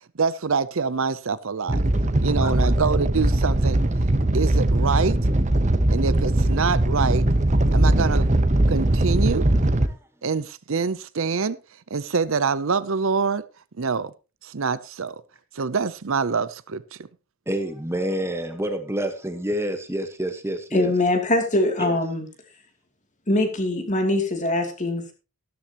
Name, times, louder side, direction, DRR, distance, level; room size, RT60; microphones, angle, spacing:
voice 1, 0.2-1.8 2.2-3.8 4.3-5.2 5.9-7.3 7.7-8.3 8.7-9.4 10.2-11.6 11.9-13.4 13.8-14.1 14.4-15.2 15.5-17.0, right 5 dB, 65° right, 16 dB, 0.6 m, -25 dB
Animal, 1.7-9.9, right 1 dB, 35° right, 1.0 m, -20 dB
voice 2, 17.5-20.9 21.8-22.0, right 1 dB, 10° right, 7 dB, 1.3 m, -28 dB
voice 3, 20.7-22.2 23.3-25.1, left 2 dB, 35° left, 4 dB, 2.8 m, -22 dB
13.5 x 13.0 x 3.0 m, 0.31 s
head